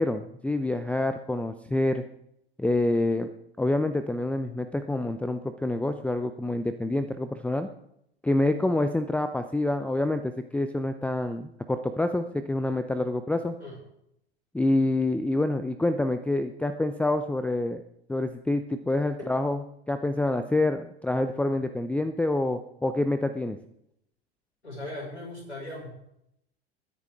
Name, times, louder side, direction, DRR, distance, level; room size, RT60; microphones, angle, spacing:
voice 1, 0.0-2.0 2.6-3.3 3.6-7.7 8.2-13.5 14.5-17.8 18.1-19.6 19.9-23.6, left 2 dB, 5° left, 10 dB, 0.6 m, -27 dB
voice 2, 24.6-25.9, left 1 dB, 85° left, -2 dB, 5.9 m, -38 dB
21.0 x 10.5 x 3.6 m, 0.76 s
figure-of-eight pair, 85°, 33 cm